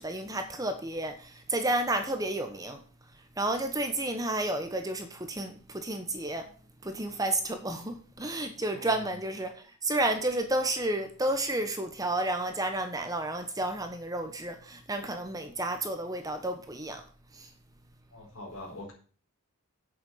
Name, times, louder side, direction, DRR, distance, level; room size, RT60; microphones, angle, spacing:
voice 1, 0.0-6.5 6.8-17.0 17.3-17.5, right 1 dB, 15° right, 1.1 m, -31 dB
voice 2, 18.1-18.9, left 2 dB, 70° left, 4.5 m, -43 dB
8.5 x 6.8 x 7.2 m
head